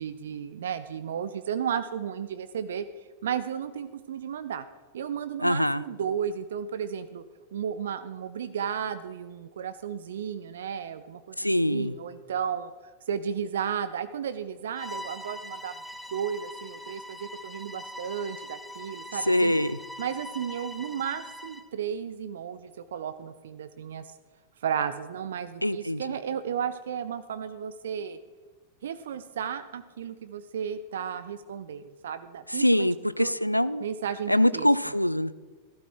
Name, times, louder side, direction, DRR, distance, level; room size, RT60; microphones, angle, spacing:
voice 1, 0.0-2.9 3.2-4.6 4.9-7.2 7.5-12.7 13.1-15.7 16.1-19.5 20.0-24.1 24.6-28.2 28.8-32.9 33.2-33.3 33.8-34.7, right 8 dB, 60° right, 13 dB, 0.5 m, -33 dB
voice 2, 5.4-5.8 11.4-11.9 19.3-19.8 25.6-26.0 32.6-33.8 34.3-35.4, left 1 dB, 90° left, 17 dB, 0.3 m, -24 dB
Bowed string instrument, 14.8-21.7, left 1 dB, ahead, 0.8 m, -42 dB
13.5 x 12.0 x 4.5 m, 1.4 s
figure-of-eight pair, 90°, 0 cm